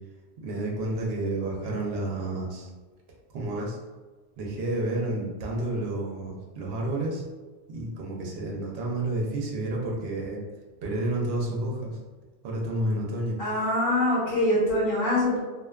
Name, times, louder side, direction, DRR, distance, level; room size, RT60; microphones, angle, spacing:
voice 1, 0.4-2.7 3.3-3.8 4.4-7.2 7.7-10.4 10.8-12.0 12.4-13.4, right 2 dB, 70° right, -1 dB, 0.8 m, -30 dB
voice 2, 13.4-15.4, left 1 dB, 50° left, -9 dB, 1.2 m, -24 dB
2.5 x 2.2 x 2.3 m, 1.3 s
omnidirectional pair, 1.1 m